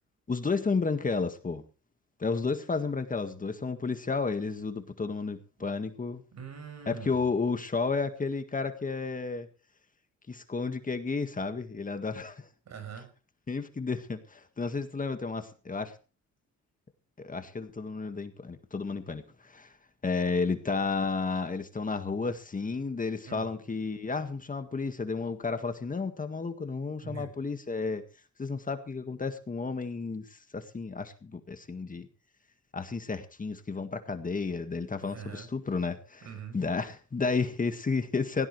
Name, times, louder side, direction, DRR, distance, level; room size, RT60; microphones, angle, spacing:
voice 1, 0.3-1.6 2.2-6.2 6.9-9.5 10.3-12.5 13.5-15.9 17.2-19.7 20.0-28.0 28.4-32.1 32.7-36.3 36.5-38.5, left 4 dB, 25° left, 8 dB, 1.8 m, -32 dB
voice 2, 6.3-7.2 12.7-13.1 23.3-23.5 27.0-27.4 35.0-35.5 36.2-36.6, right 6 dB, 60° right, 8 dB, 6.2 m, -43 dB
18.5 x 16.5 x 3.3 m, 0.36 s
cardioid pair, 90°, 30 cm